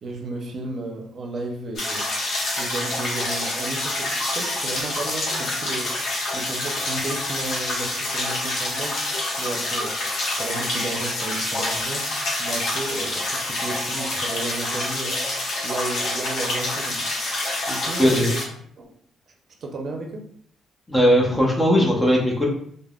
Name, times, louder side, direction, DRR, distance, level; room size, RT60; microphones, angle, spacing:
voice 1, 0.0-2.1 2.6-5.9 6.3-9.0 9.4-12.1 12.4-15.2 15.6-18.4 18.8-18.9 19.6-20.3, right 2 dB, 50° right, 2 dB, 0.6 m, -33 dB
sound 1, 1.8-18.5, left 2 dB, 70° left, 0.8 m, -27 dB
voice 2, 20.9-22.5, equal, 15° left, -2 dB, 0.7 m, -18 dB
3.3 x 2.0 x 2.3 m, 0.63 s
cardioid pair, 90°, 0 cm